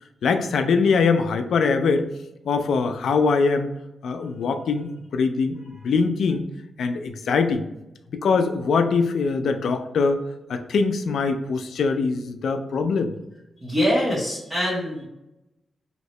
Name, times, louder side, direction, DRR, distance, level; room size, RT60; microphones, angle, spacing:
voice 1, 0.2-2.1 2.5-3.7 4.0-6.5 6.8-7.6 8.2-10.2 10.5-13.1, left 4 dB, 75° left, 7 dB, 0.3 m, -22 dB
voice 2, 13.6-15.1, equal, 20° right, -7 dB, 0.8 m, -23 dB
2.9 x 2.7 x 3.1 m, 0.92 s
wide cardioid pair, 160°, 0 cm